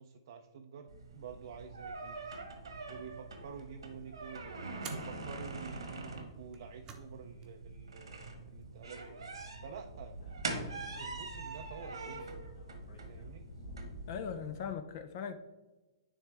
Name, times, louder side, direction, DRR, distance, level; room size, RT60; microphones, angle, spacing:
voice 1, 0.0-2.2 2.9-9.2 9.6-10.1 11.0-12.3 13.1-13.4, right 6 dB, 65° right, 4 dB, 0.5 m, -49 dB
sound 1, 0.9-14.7, right 3 dB, 90° right, 1.3 m, -44 dB
sound 2, 4.8-5.2 6.4-7.1 7.4-7.5 8.6-9.2, right 6 dB, 25° right, 0.8 m, -50 dB
Speech / Wind, 9.8-14.3, equal, 80° left, 1.8 m, -49 dB
voice 2, 14.1-15.3, left 7 dB, 50° left, 9 dB, 0.5 m, -39 dB
9.8 x 3.6 x 3.4 m, 1.1 s
hypercardioid pair, 130°, 3 cm